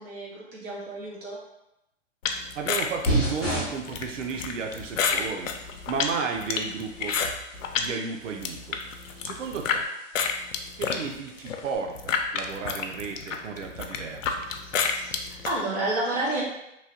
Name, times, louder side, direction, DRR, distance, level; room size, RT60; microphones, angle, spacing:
voice 1, 0.0-1.4 14.7-16.4, right 2 dB, 25° right, -5 dB, 0.9 m, -31 dB
sound 1, 2.2-7.9 8.3-9.8 10.1-15.5, left 6 dB, 90° left, 0.5 m, -29 dB
voice 2, 2.5-5.5 5.9-7.2 7.8-8.8 9.2-9.9 10.8-14.4, right 5 dB, 85° right, 3 dB, 0.6 m, -33 dB
sound 2, 3.1-11.8, right 1 dB, ahead, 0.9 m, -35 dB
3.0 x 2.8 x 2.6 m, 0.86 s
hypercardioid pair, 140°, 37 cm